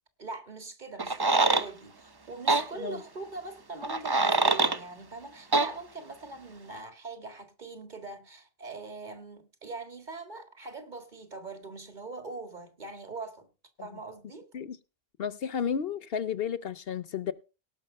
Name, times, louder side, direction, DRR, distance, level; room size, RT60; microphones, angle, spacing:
voice 1, 0.2-13.5 13.8-14.5, right 3 dB, 45° right, 2.1 m, -42 dB
sound 1, 1.0-1.7 2.5-2.6 3.8-4.8 5.5-5.7, right 3 dB, 25° right, 0.7 m, -24 dB
voice 2, 15.2-17.3, left 7 dB, 65° left, 1.0 m, -32 dB
18.0 x 6.1 x 5.4 m
omnidirectional pair, 1.1 m